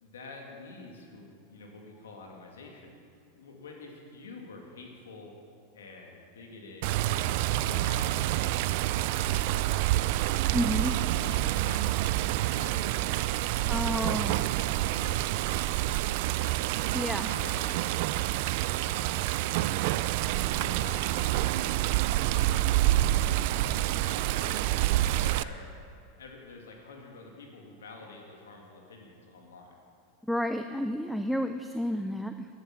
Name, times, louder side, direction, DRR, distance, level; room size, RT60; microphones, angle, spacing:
voice 1, 0.0-3.0 3.3-5.3 5.7-10.0 10.9-11.9 12.5-14.2 14.5-15.6 15.9-16.7 17.1-18.0 18.8-19.3 20.3-23.3 23.7-24.8 25.1-25.7 26.2-29.8, left 3 dB, 85° left, 1 dB, 2.2 m, -48 dB
Water, 6.8-25.4, right 15 dB, 60° right, 0.4 m, -27 dB
voice 2, 10.5-10.9 13.7-14.4 16.9-17.3 30.3-32.5, equal, ahead, 8 dB, 0.5 m, -30 dB
12.5 x 11.0 x 5.9 m, 2.4 s
hypercardioid pair, 105°, 0 cm